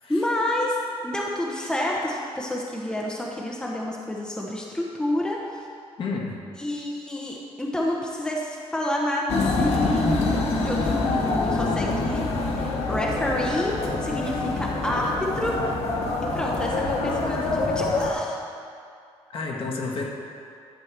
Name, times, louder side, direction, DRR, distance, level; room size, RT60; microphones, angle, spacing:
voice 1, 0.1-0.8 1.0-5.7 6.6-12.2 12.6-15.6 16.2-18.4, left 1 dB, 5° left, -2 dB, 1.0 m, -29 dB
voice 2, 6.0-6.3 19.3-20.0, left 4 dB, 60° left, -2 dB, 1.6 m, -30 dB
sound 1, 9.3-18.1, left 3 dB, 80° left, 1.3 m, -25 dB
12.0 x 4.7 x 7.4 m, 2.4 s
wide cardioid pair, 160°, 11 cm